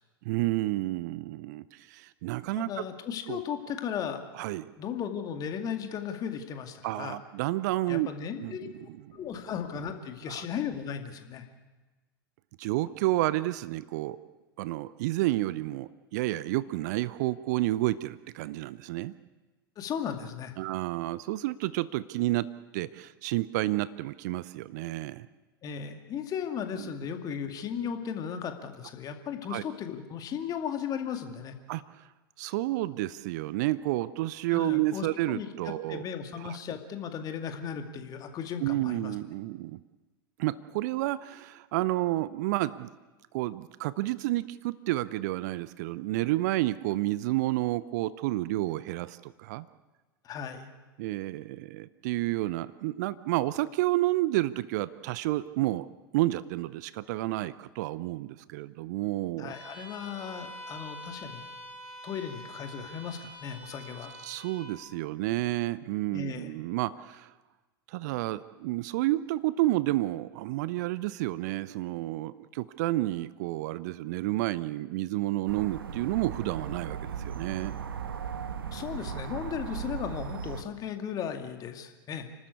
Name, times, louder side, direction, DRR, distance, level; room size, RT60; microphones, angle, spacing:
voice 1, 0.2-2.7 3.3-3.4 4.3-4.7 6.8-8.1 8.4-8.7 10.3-10.5 12.6-14.2 14.6-19.1 20.6-22.5 22.7-25.3 26.8-26.9 29.5-29.6 31.7-31.8 32.4-36.0 36.4-36.6 38.6-39.8 40.4-42.9 43.3-49.7 51.0-55.9 56.1-59.5 64.2-67.3 67.9-77.7, right 17 dB, 50° right, 17 dB, 0.6 m, -30 dB
voice 2, 2.6-4.2 4.8-7.2 7.9-8.7 9.1-11.5 19.8-20.6 25.6-31.6 34.5-39.1 50.2-50.7 59.4-61.5 62.0-64.1 66.1-66.5 78.7-82.3, left 8 dB, 30° left, 6 dB, 2.2 m, -36 dB
Bowed string instrument, 59.5-64.7, equal, 10° right, 6.9 m, -46 dB
sound 1, 75.5-80.6, right 7 dB, 70° right, 1.3 m, -37 dB
29.5 x 13.0 x 8.4 m, 1.2 s
figure-of-eight pair, 85°, 12 cm